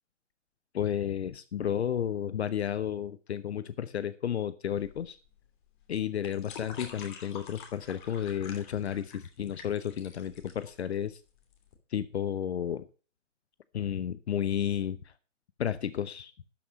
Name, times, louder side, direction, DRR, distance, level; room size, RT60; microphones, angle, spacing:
voice 1, 0.7-5.2 5.9-11.2 11.9-12.9 13.7-15.1 15.6-16.3, left 9 dB, 60° left, 15 dB, 0.8 m, -32 dB
sound 1, 4.7-11.7, left 6 dB, 40° left, 2.8 m, -48 dB
12.0 x 6.1 x 6.0 m, 0.36 s
figure-of-eight pair, 130°, 37 cm